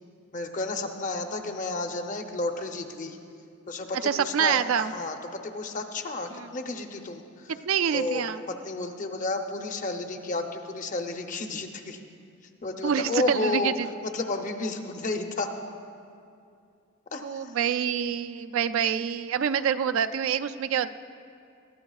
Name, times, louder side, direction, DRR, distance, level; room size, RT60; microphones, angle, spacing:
voice 1, 0.3-3.2 3.7-7.5 7.9-12.0 12.6-13.7 14.0-15.5 17.1-17.5, left 2 dB, 35° left, 5 dB, 0.7 m, -32 dB
voice 2, 4.0-4.9 6.3-6.5 7.7-8.4 12.8-13.9 17.2-20.9, right 8 dB, 65° right, 10 dB, 0.4 m, -26 dB
20.5 x 13.5 x 2.4 m, 2.4 s
head